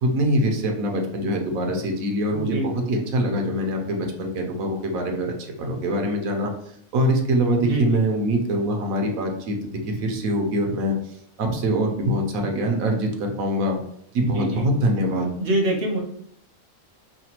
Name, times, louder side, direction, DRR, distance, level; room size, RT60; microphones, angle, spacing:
voice 1, 0.0-6.5 6.9-10.9 11.4-13.8 14.1-15.3, right 1 dB, 75° right, 3 dB, 1.2 m, -24 dB
voice 2, 2.3-2.9 7.6-8.0 14.2-14.7 15.4-16.0, right 1 dB, 50° right, 0 dB, 0.8 m, -25 dB
4.9 x 2.2 x 2.9 m, 0.68 s
omnidirectional pair, 1.5 m